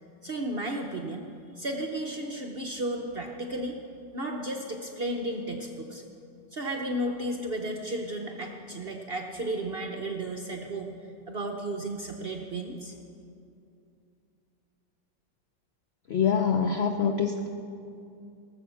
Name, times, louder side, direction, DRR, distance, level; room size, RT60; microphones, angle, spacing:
voice 1, 0.2-3.8 4.1-6.0 6.5-10.9 11.3-12.9, right 1 dB, 50° right, 2 dB, 0.7 m, -33 dB
voice 2, 16.1-17.5, left 6 dB, 85° left, 5 dB, 0.5 m, -25 dB
18.0 x 7.0 x 6.9 m, 2.6 s
omnidirectional pair, 2.0 m